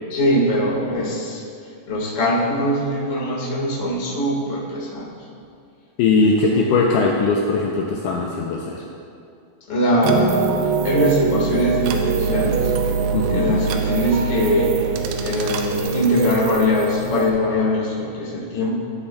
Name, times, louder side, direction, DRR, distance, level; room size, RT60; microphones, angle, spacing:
voice 1, 0.1-1.4 1.9-5.1 6.1-6.7 9.7-10.4 10.8-12.7 13.3-14.8 15.2-18.8, left 1 dB, 35° left, -5 dB, 1.2 m, -22 dB
voice 2, 6.0-8.8 13.1-13.6, left 3 dB, 85° left, -1 dB, 1.8 m, -20 dB
sound 1, 10.0-17.3, right 6 dB, 85° right, 2.0 m, -23 dB
sound 2, 12.3-17.5, left 2 dB, 65° right, 0.9 m, -37 dB
13.5 x 8.1 x 2.3 m, 2.4 s
omnidirectional pair, 4.2 m